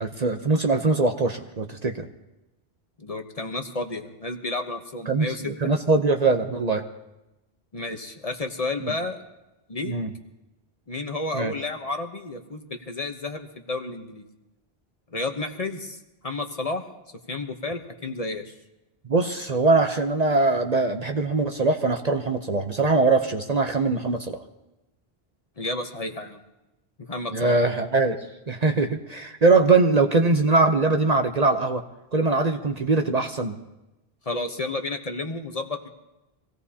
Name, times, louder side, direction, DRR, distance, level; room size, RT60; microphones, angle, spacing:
voice 1, 0.0-2.1 5.1-6.8 8.8-8.9 9.8-10.1 11.3-11.5 19.1-24.4 27.3-28.2 28.5-31.8 32.1-33.6, right 3 dB, 45° right, 5 dB, 0.8 m, -22 dB
voice 2, 3.0-5.7 7.7-9.2 9.7-9.9 10.9-14.2 15.1-16.8 17.3-18.5 25.6-26.4 27.0-27.6 34.2-35.9, left 2 dB, 40° left, 5 dB, 1.0 m, -31 dB
24.5 x 17.0 x 2.8 m, 0.97 s
omnidirectional pair, 1.1 m